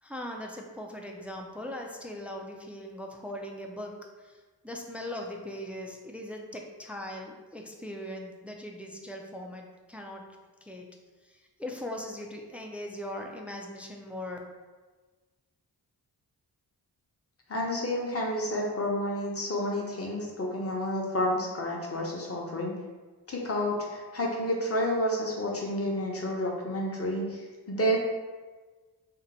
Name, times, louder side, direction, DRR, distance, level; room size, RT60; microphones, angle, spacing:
voice 1, 0.0-10.2 10.6-10.9 11.2-14.4, left 1 dB, 5° right, 1 dB, 0.3 m, -40 dB
voice 2, 17.5-22.8 23.3-28.0, equal, 35° left, -1 dB, 0.8 m, -30 dB
2.7 x 2.1 x 4.0 m, 1.3 s
cardioid pair, 55°, 43 cm